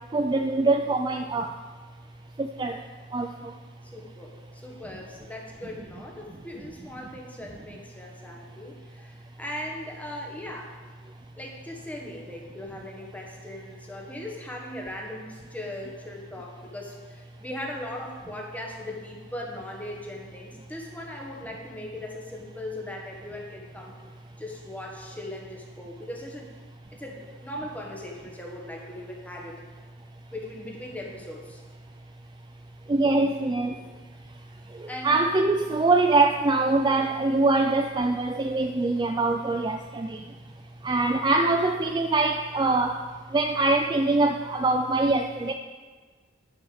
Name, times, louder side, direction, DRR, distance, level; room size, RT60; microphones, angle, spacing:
voice 1, 0.1-1.5 2.4-2.8 3.1-3.5 32.9-33.8 34.8-40.2 40.8-43.0 43.3-45.5, right 2 dB, 20° right, 4 dB, 0.3 m, -23 dB
voice 2, 3.8-10.8 11.4-24.0 24.4-26.5 26.9-29.6 30.3-31.6 34.9-35.3, left 1 dB, 10° left, -1 dB, 1.3 m, -39 dB
10.0 x 5.5 x 7.0 m, 1.4 s
head